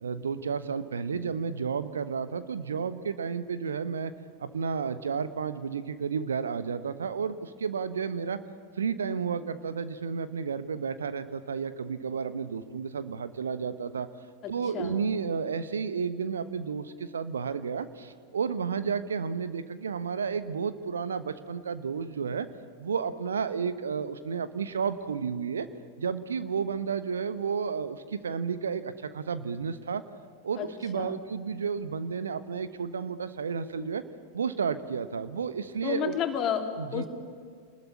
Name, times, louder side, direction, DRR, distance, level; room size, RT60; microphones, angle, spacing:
voice 1, 0.0-4.1 4.4-8.4 8.8-14.1 14.5-22.5 22.8-25.7 26.0-30.0 30.4-34.0 34.3-36.2 36.8-37.1, right 6 dB, 70° right, 12 dB, 1.2 m, -32 dB
voice 2, 14.4-15.0 30.6-30.7 30.9-31.2 35.8-36.6 36.9-37.1, left 9 dB, 35° left, 4 dB, 3.2 m, -31 dB
27.5 x 20.5 x 9.8 m, 2.1 s
figure-of-eight pair, 90°, 0 cm